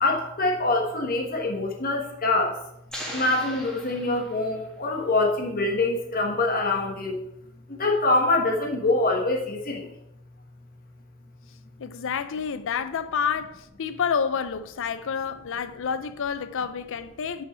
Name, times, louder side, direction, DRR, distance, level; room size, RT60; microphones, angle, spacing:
voice 1, 0.0-2.5 3.1-7.2 7.8-9.8, left 2 dB, 45° left, 1.3 m, -24 dB
sound 1, 2.9-4.8, equal, 5° left, 1.8 m, -39 dB
voice 2, 11.8-17.4, left 6 dB, 65° left, 0.5 m, -29 dB
5.7 x 5.4 x 6.2 m
head